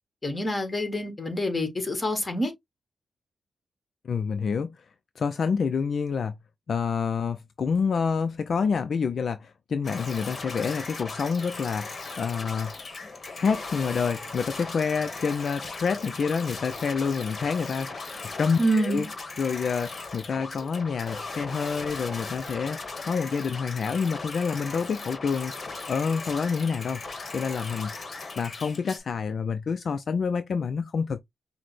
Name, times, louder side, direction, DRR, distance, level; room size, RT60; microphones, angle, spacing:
voice 1, 0.2-2.5 18.6-19.1, equal, 25° left, 1.6 m, -26 dB
voice 2, 4.0-4.9 5.2-6.3 6.7-11.9 12.2-12.7 13.3-18.1 18.4-19.1 19.4-22.8 23.1-25.5 25.9-27.9 28.4-31.2, left 5 dB, 60° left, 0.4 m, -28 dB
sound 1, 9.8-29.0, left 3 dB, 45° left, 1.2 m, -38 dB
5.8 x 2.1 x 3.2 m
cardioid pair, 105°, 0 cm